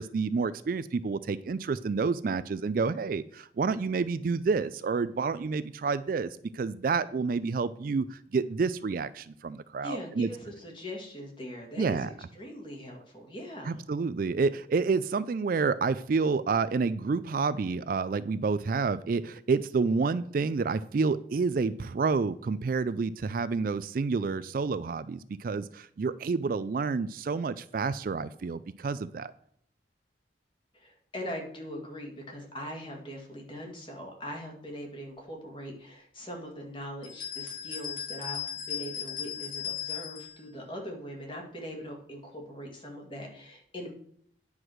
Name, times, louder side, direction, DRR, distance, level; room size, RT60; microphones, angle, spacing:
voice 1, 0.0-10.3 11.8-12.1 13.6-29.3, right 4 dB, 50° right, 15 dB, 0.3 m, -29 dB
voice 2, 9.8-13.9 30.7-43.9, equal, 25° left, 1 dB, 2.0 m, -41 dB
sound 1, 37.0-40.4, left 9 dB, 45° left, 2.0 m, -37 dB
9.7 x 4.8 x 6.2 m, 0.64 s
head